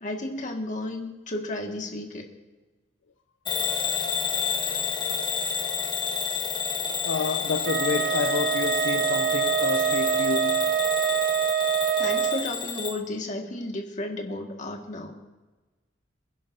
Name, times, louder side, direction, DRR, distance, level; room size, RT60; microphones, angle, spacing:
voice 1, 0.0-2.3 12.0-15.2, left 1 dB, 40° left, 1.8 m, -33 dB
Bell / Alarm, 3.5-13.0, left 6 dB, 25° left, 1.3 m, -29 dB
voice 2, 7.0-10.7, left 5 dB, 70° left, 0.5 m, -29 dB
Wind instrument woodwind instrument, 7.6-12.5, right 10 dB, 45° right, 0.7 m, -25 dB
26.5 x 10.5 x 2.7 m
head